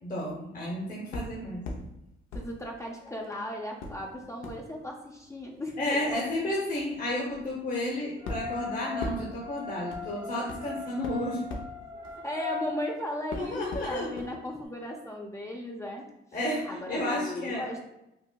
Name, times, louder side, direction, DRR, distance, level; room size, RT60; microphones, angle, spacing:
voice 1, 0.0-1.7 5.8-11.5 13.3-14.1 16.3-17.6, left 1 dB, 45° left, -4 dB, 0.9 m, -32 dB
sound 1, 1.1-1.9 2.3-3.3 3.8-12.9 13.3-14.3 14.6-14.7, left 2 dB, 85° left, 0.6 m, -41 dB
voice 2, 2.3-5.8 12.2-16.0 16.6-17.8, left 1 dB, 15° left, 0 dB, 0.4 m, -36 dB
sound 2, 8.2-12.7, left 4 dB, 25° right, 0.7 m, -39 dB
5.1 x 2.0 x 2.2 m, 0.88 s
cardioid pair, 90°, 20 cm